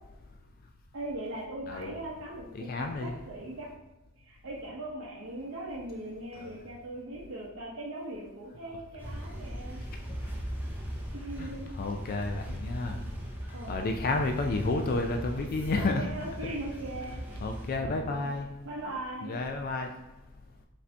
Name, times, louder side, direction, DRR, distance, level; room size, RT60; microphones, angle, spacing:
voice 1, 0.9-3.7 4.2-9.8 11.1-11.7 13.5-13.8 15.8-17.4 17.7-18.3 18.6-19.4, right 1 dB, 60° right, -6 dB, 0.7 m, -40 dB
voice 2, 2.5-3.2 6.3-6.5 11.4-13.0 13.7-16.2 16.4-16.5 17.4-18.5 19.2-19.9, left 3 dB, 40° left, 4 dB, 0.3 m, -31 dB
sound 1, 9.0-17.7, equal, 10° right, 0.6 m, -39 dB
5.2 x 2.6 x 3.3 m, 1.0 s
head